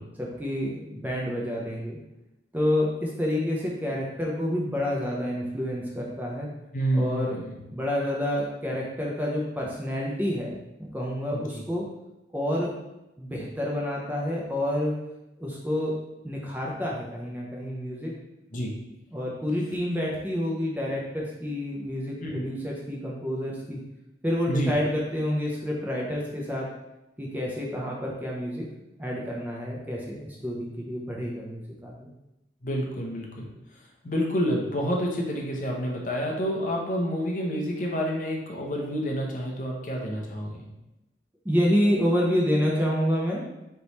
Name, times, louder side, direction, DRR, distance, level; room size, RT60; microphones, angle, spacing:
voice 1, 0.2-2.0 2.5-6.5 6.9-7.4 7.7-10.5 10.8-11.8 12.3-12.7 13.2-14.9 15.4-15.9 16.2-18.1 19.1-23.8 24.2-26.7 27.2-28.6 29.0-32.1 41.4-43.4, equal, 10° right, -4 dB, 0.5 m, -28 dB
voice 2, 6.7-7.5 11.3-11.6 18.5-18.8 22.2-22.5 24.5-24.7 32.6-40.7, equal, 45° left, -1 dB, 0.7 m, -29 dB
3.4 x 3.0 x 4.0 m, 0.94 s
head